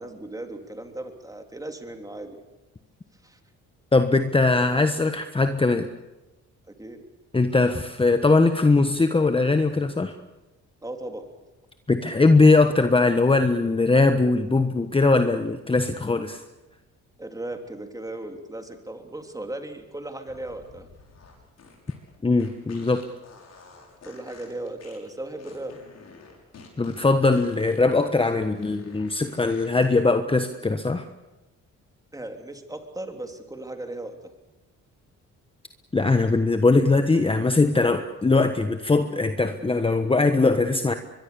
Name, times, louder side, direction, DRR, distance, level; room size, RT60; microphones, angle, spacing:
voice 1, 0.0-2.4 3.2-3.4 6.8-7.0 10.8-11.3 17.2-20.9 24.0-25.8 32.1-34.1, right 1 dB, 10° right, 5 dB, 3.3 m, -36 dB
voice 2, 3.9-5.9 7.3-10.1 11.9-16.4 22.2-23.0 26.8-31.0 35.9-40.9, left 3 dB, 20° left, 8 dB, 1.3 m, -20 dB
sound 1, 20.2-29.9, left 4 dB, 60° left, 6.5 m, -50 dB
23.5 x 22.5 x 7.0 m, 1.0 s
cardioid pair, 90°, 30 cm